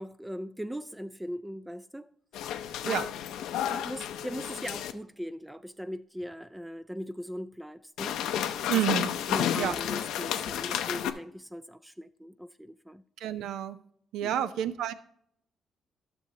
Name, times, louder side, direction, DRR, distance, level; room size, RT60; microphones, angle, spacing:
voice 1, 0.0-3.1 3.7-8.2 8.7-8.8 9.3-13.0 14.2-14.5, equal, 5° right, 0.3 m, -40 dB
sound 1, 2.3-4.9 8.0-11.1, left 10 dB, 90° left, 0.5 m, -31 dB
voice 2, 8.7-9.1 9.6-9.7 13.2-13.8 14.1-14.9, right 10 dB, 85° right, 0.5 m, -29 dB
12.0 x 6.3 x 2.8 m
cardioid pair, 90°, 0 cm